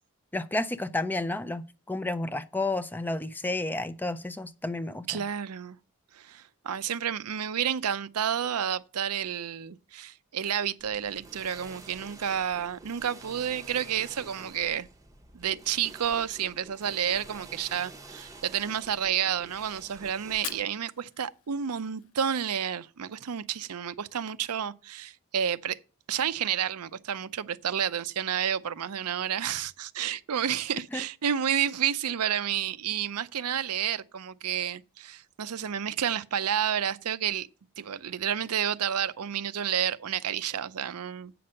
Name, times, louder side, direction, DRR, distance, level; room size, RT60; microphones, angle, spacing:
voice 1, 0.3-5.1 30.9-31.0, left 2 dB, 10° left, 0.4 m, -31 dB
voice 2, 5.1-5.8 6.1-14.9 15.3-25.8 26.1-37.5 37.8-41.3, right 9 dB, 90° right, 0.6 m, -30 dB
sound 1, 10.8-20.6, right 2 dB, 15° right, 0.9 m, -49 dB
Fire, 20.3-22.3, left 12 dB, 70° left, 0.6 m, -44 dB
8.4 x 6.0 x 6.4 m
head